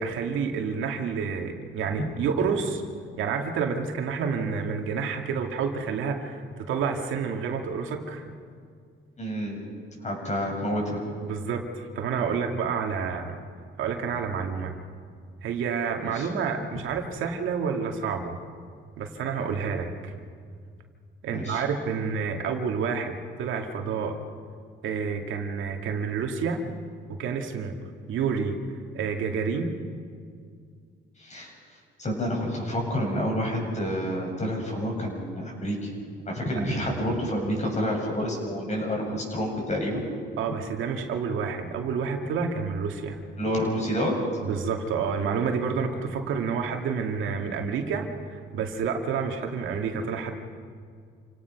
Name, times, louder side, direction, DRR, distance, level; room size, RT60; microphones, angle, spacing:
voice 1, 0.0-2.8 3.2-8.2 11.2-13.4 13.8-14.7 15.4-18.4 19.0-20.1 21.2-23.1 23.4-24.2 24.8-26.6 27.1-27.7 28.1-28.6 28.9-29.7 36.5-36.6 40.4-43.2 44.4-50.3, right 6 dB, 80° right, 3 dB, 2.3 m, -29 dB
voice 2, 9.2-9.6 10.0-11.0 16.1-16.3 21.3-21.6 31.2-31.5 32.0-35.9 36.2-40.0 43.4-44.2, equal, 35° left, 0 dB, 7.6 m, -28 dB
28.0 x 17.5 x 6.0 m, 2.1 s
cardioid pair, 90°, 20 cm